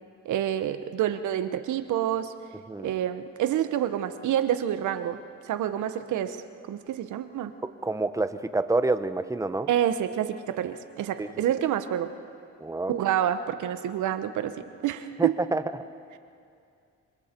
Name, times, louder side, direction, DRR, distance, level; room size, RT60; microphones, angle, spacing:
voice 1, 0.2-2.3 2.8-5.2 5.5-7.5 9.7-12.1 12.9-15.4, right 10 dB, 75° right, 10 dB, 1.1 m, -28 dB
voice 2, 7.8-9.7 11.2-11.3 12.6-12.9 15.2-15.8, right 2 dB, 10° right, 11 dB, 0.9 m, -27 dB
27.0 x 26.5 x 4.5 m, 2.4 s
cardioid pair, 90°, 30 cm